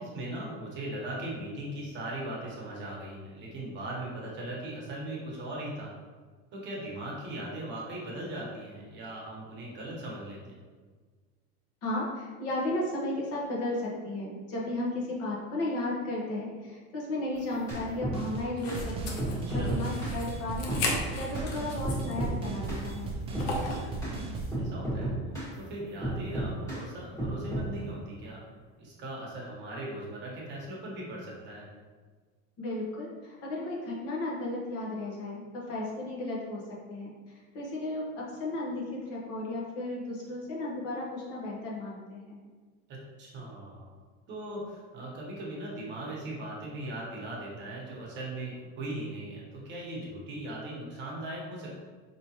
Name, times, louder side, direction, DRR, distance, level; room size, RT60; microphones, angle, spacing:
voice 1, 0.0-5.9 6.5-10.5 19.4-19.7 23.6-24.2 24.6-25.1 25.6-28.4 28.8-31.7 42.9-43.9 44.3-51.7, right 1 dB, 35° right, -4 dB, 1.0 m, -39 dB
voice 2, 11.8-20.8 21.2-23.1 32.6-36.6 36.9-37.1 37.5-42.4, left 1 dB, 50° left, -4 dB, 1.0 m, -34 dB
sound 1, 17.4-18.2 18.7-18.8 19.2-20.2 20.7-20.9 21.3-21.5 21.8-22.4 22.7-22.9 23.3-23.5 24.0-24.2 24.5-25.5 26.0-26.8 27.2-27.7, right 1 dB, 10° left, 1.4 m, -32 dB
sound 2, 17.7-17.8 18.1-18.5 18.7-24.6, right 3 dB, 20° right, 0.4 m, -36 dB
sound 3, 18.6-22.3 22.6-22.7 23.4-23.9, left 2 dB, 80° left, 0.9 m, -35 dB
4.7 x 3.0 x 2.8 m, 1.5 s
cardioid pair, 155°, 31 cm